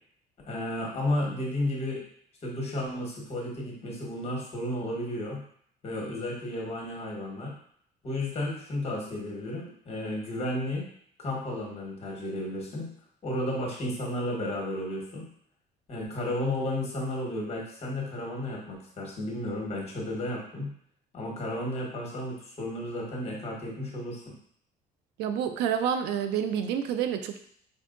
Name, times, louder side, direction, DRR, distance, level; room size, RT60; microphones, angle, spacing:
voice 1, 0.5-2.0 2.4-5.4 5.8-7.5 8.0-10.9 11.2-12.9 13.2-15.3 15.9-20.7 21.1-24.3, left 1 dB, 40° left, -2 dB, 1.3 m, -33 dB
voice 2, 25.2-27.4, right 8 dB, 85° right, 8 dB, 0.4 m, -28 dB
4.5 x 2.5 x 2.5 m, 0.62 s
cardioid pair, 110°, 17 cm